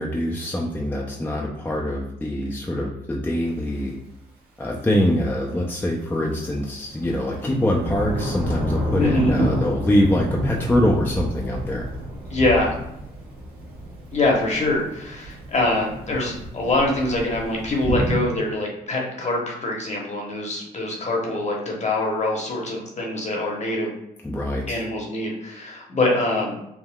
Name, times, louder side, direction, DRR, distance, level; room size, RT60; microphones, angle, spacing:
voice 1, 0.0-4.0 4.6-11.9 24.2-24.8, left 1 dB, 10° left, -1 dB, 0.4 m, -24 dB
Thunder / Rain, 3.4-3.5 6.5-18.2, equal, 60° right, 1.1 m, -29 dB
voice 2, 9.0-9.3 12.3-12.8 14.1-23.9 24.7-26.6, left 2 dB, 40° left, -1 dB, 0.9 m, -24 dB
3.5 x 2.1 x 2.2 m, 0.81 s
supercardioid pair, 60°, 18 cm